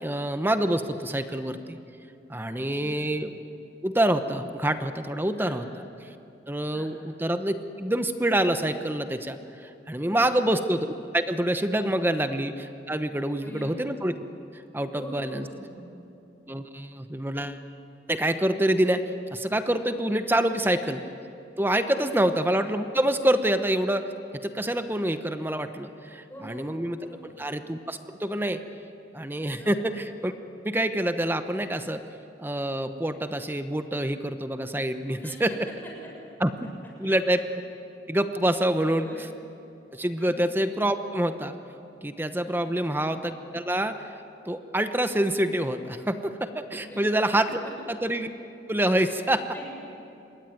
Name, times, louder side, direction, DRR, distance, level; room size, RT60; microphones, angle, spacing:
voice 1, 0.0-1.8 2.3-3.3 3.8-5.8 6.5-14.2 14.5-15.4 16.5-17.6 18.1-19.0 19.3-21.0 21.6-24.1 24.4-27.0 27.4-28.6 29.1-30.3 30.6-32.0 32.4-35.5 36.4-36.7 37.0-37.4 38.1-39.1 39.9-41.5 42.0-44.0 44.4-47.6 47.9-48.3 48.7-49.4, right 1 dB, 10° right, 8 dB, 0.9 m, -26 dB
voice 2, 2.5-3.1 5.4-5.6 6.7-6.9 10.0-10.4 13.4-13.7 14.9-15.9 20.1-20.3 21.9-22.2 26.3-27.4 29.6-29.8 35.2-35.4 37.0-37.2 38.8-39.2 40.2-40.4 42.6-43.0 46.8-47.0 47.5-47.8 49.5-49.8, right 1 dB, 10° left, -2 dB, 7.1 m, -44 dB
27.0 x 22.0 x 9.4 m, 2.7 s
head